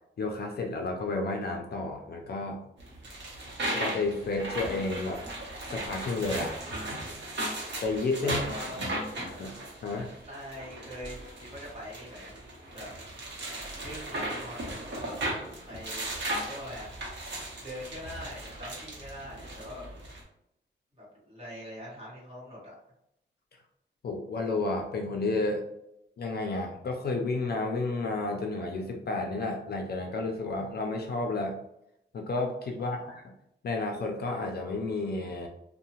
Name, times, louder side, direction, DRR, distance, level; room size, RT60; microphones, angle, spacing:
voice 1, 0.2-2.6 3.7-5.3 5.7-6.6 7.8-8.4 8.8-8.9 9.4-9.5 9.8-10.1 24.0-25.6 26.2-31.5 32.1-33.2 33.6-35.5, left 3 dB, 55° left, 2 dB, 0.4 m, -31 dB
sound 1, 2.8-20.2, right 1 dB, 65° right, 0.8 m, -37 dB
voice 2, 8.2-9.0 9.9-12.9 13.8-15.2 15.7-17.1 17.3-19.8 20.9-22.7 32.8-33.0, equal, 30° right, -7 dB, 1.1 m, -43 dB
2.7 x 2.0 x 2.8 m, 0.79 s
wide cardioid pair, 170°, 20 cm